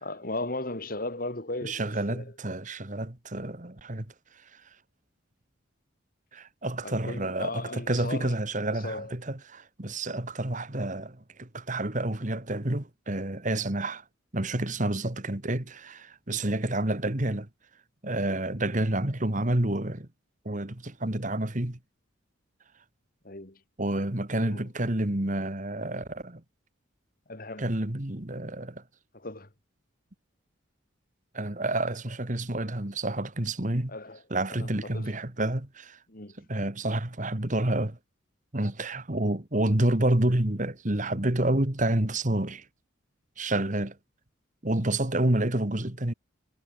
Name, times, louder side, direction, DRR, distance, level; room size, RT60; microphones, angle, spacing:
voice 1, 0.0-2.2 6.8-8.3 8.7-9.1 23.2-23.6 24.5-24.6 27.3-27.7 29.2-29.5 33.9-34.2 34.6-34.7 34.9-35.1 36.1-36.3, left 2 dB, 45° left, 2.7 m, -36 dB
voice 2, 1.6-4.6 6.3-14.0 14.3-17.5 18.0-20.1 20.5-21.8 23.8-26.4 27.6-28.8 31.3-34.0 34.3-36.0 36.4-38.0 38.5-42.7 43.4-44.0 44.6-46.1, right 1 dB, 40° right, 1.9 m, -29 dB
head